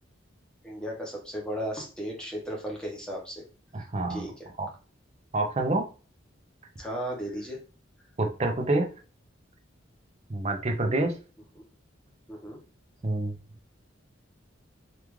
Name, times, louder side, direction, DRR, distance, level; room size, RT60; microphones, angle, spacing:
voice 1, 0.6-3.4 4.1-4.5 6.8-7.6 11.5-11.6 12.3-12.6, equal, 5° left, -2 dB, 0.8 m, -35 dB
voice 2, 3.7-4.3 4.6-4.7 5.3-5.8 8.2-8.9 10.3-11.1 13.0-13.4, right 2 dB, 35° right, 4 dB, 0.5 m, -27 dB
3.5 x 2.4 x 3.0 m, 0.36 s
head